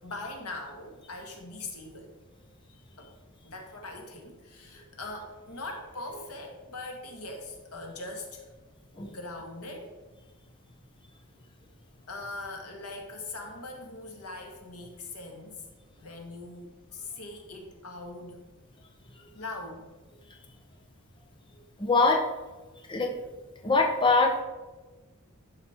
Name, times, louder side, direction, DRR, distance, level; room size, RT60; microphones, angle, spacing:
voice 1, 0.0-2.1 3.0-3.1 3.4-8.4 8.9-9.9 12.1-15.6 16.0-18.4 19.3-19.8, left 2 dB, 85° left, 2 dB, 1.8 m, -41 dB
voice 2, 21.8-22.2 22.9-23.1 23.6-24.4, left 3 dB, 20° left, 1 dB, 0.9 m, -23 dB
11.5 x 5.1 x 4.4 m, 1.2 s
head